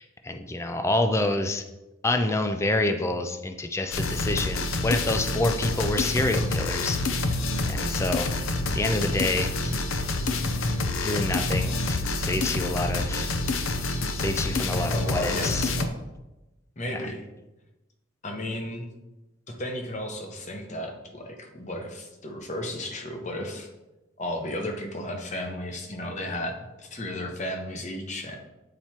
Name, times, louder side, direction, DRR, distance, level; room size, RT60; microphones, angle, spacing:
voice 1, 0.0-1.6 2.0-7.4 7.6-8.3 8.7-9.7 11.0-13.3 14.1-15.7 16.9-17.0, left 2 dB, 15° left, 6 dB, 0.3 m, -28 dB
sound 1, 3.9-15.9, left 2 dB, 80° left, 0.6 m, -27 dB
voice 2, 14.9-16.0 16.8-17.2 18.2-18.9 19.5-23.7 24.2-28.4, left 1 dB, 35° left, 3 dB, 0.9 m, -34 dB
8.9 x 4.5 x 2.9 m, 1.0 s
head